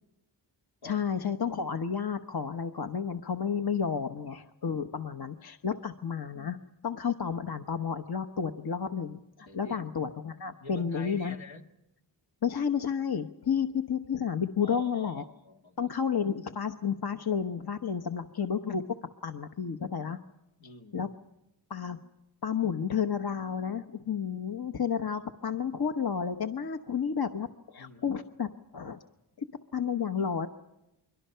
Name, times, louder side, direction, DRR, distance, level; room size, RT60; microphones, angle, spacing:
voice 1, 0.8-6.6 6.8-11.3 12.4-15.2 15.8-18.8 19.2-20.2 20.9-21.1 21.7-22.0 22.4-28.5 28.7-29.0 29.4-29.5 29.7-30.5, left 7 dB, 55° left, 7 dB, 0.9 m, -31 dB
voice 2, 9.5-9.9 10.6-11.7 14.6-15.9 20.6-21.0 27.8-28.2, left 2 dB, 80° left, 3 dB, 1.8 m, -47 dB
29.5 x 22.5 x 5.6 m, 0.92 s
cardioid pair, 45°, 46 cm